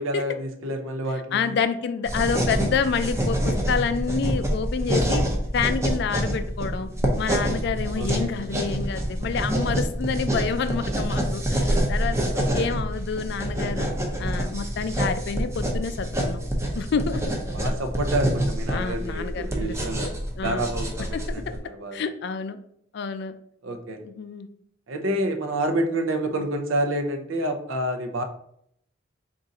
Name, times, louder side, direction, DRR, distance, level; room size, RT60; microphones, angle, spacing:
voice 1, 0.0-1.6 8.0-8.3 12.3-12.7 17.5-20.1 20.4-22.0 23.6-24.0 24.9-28.2, right 1 dB, 85° right, 5 dB, 0.6 m, -28 dB
voice 2, 1.3-5.3 5.5-6.9 7.2-12.2 12.5-13.9 14.2-16.4 16.7-17.2 18.7-19.8 20.4-20.6 21.1-21.5 21.9-22.6 22.9-23.3 24.0-24.5, left 5 dB, 55° left, 11 dB, 0.3 m, -28 dB
sound 1, 2.1-21.6, right 1 dB, 15° right, 0.6 m, -26 dB
3.8 x 2.5 x 4.0 m, 0.70 s
head